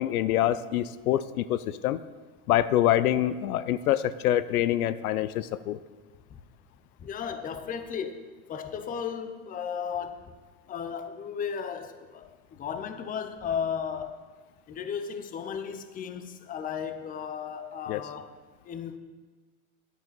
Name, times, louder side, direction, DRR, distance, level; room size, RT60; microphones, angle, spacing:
voice 1, 0.0-2.0 2.5-5.8 17.9-18.0, left 12 dB, 85° left, 16 dB, 0.6 m, -25 dB
voice 2, 7.0-10.4 10.7-14.2 14.7-18.4 18.6-19.0, left 7 dB, 20° left, 10 dB, 0.6 m, -35 dB
10.0 x 8.8 x 4.0 m, 1.4 s
hypercardioid pair, 115°, 43 cm